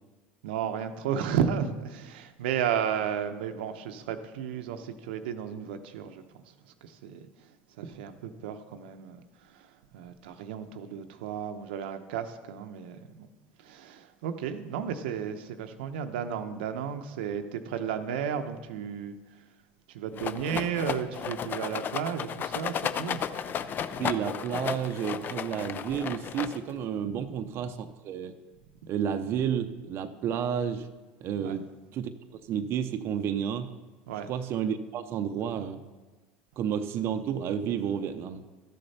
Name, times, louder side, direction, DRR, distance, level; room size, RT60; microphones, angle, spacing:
voice 1, 0.4-6.4 6.8-7.3 7.8-9.7 9.9-13.3 13.6-19.2 19.9-24.0 27.2-27.3 31.4-31.6 34.1-34.3, right 8 dB, 85° right, 7 dB, 0.7 m, -33 dB
Rattle, 20.2-26.8, left 8 dB, 35° left, 0.5 m, -34 dB
voice 2, 24.0-28.4 28.9-30.9 31.2-33.7 34.3-35.8 36.6-38.4, right 8 dB, 50° right, 7 dB, 0.6 m, -31 dB
12.5 x 6.7 x 4.2 m, 1.2 s
supercardioid pair, 105°, 5 cm